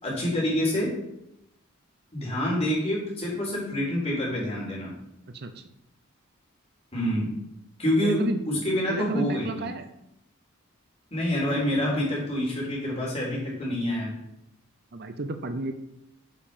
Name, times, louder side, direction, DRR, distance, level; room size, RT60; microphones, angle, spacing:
voice 1, 0.0-1.0 2.1-4.9 6.9-7.4 7.8-9.7 11.1-14.2, left 1 dB, 30° left, -4 dB, 3.4 m, -27 dB
voice 2, 5.3-5.7 8.0-8.4 8.9-9.9 14.9-15.7, right 3 dB, 50° right, 8 dB, 0.7 m, -32 dB
9.5 x 5.4 x 5.2 m, 0.82 s
head